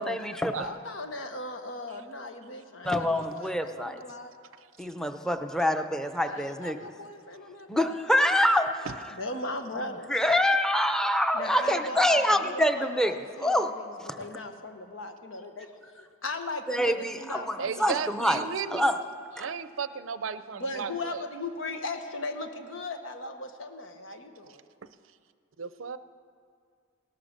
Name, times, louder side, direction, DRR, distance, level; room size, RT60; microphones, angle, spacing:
voice 1, 0.0-0.5 2.8-4.0 4.8-6.8 7.7-8.7 10.1-13.1 13.4-13.7 14.0-14.2 16.7-18.5 18.7-19.0 19.4-19.5, left 1 dB, 5° left, 7 dB, 0.7 m, -25 dB
voice 2, 0.6-4.3 6.2-8.4 9.1-10.1 11.3-15.7 16.0-18.1 20.5-24.6, left 2 dB, 90° left, 6 dB, 1.3 m, -38 dB
voice 3, 17.6-18.9 19.4-21.2 25.6-26.0, right 6 dB, 85° right, 13 dB, 0.6 m, -34 dB
18.0 x 11.5 x 6.6 m, 2.2 s
head